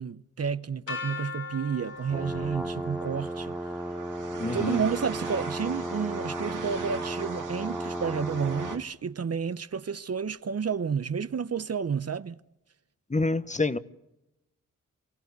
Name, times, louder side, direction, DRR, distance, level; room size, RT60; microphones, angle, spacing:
voice 1, 0.0-3.6 4.5-12.4, right 6 dB, 50° right, 0.8 m, -31 dB
sound 1, 0.9-6.8, left 4 dB, 90° left, 5.7 m, -42 dB
sound 2, 1.8-8.8, right 5 dB, 70° right, 2.7 m, -41 dB
sound 3, 2.1-8.9, right 1 dB, 5° right, 0.8 m, -35 dB
voice 2, 4.4-4.8 13.1-13.8, left 3 dB, 20° left, 1.1 m, -27 dB
24.5 x 15.5 x 8.1 m
cardioid pair, 45°, 32 cm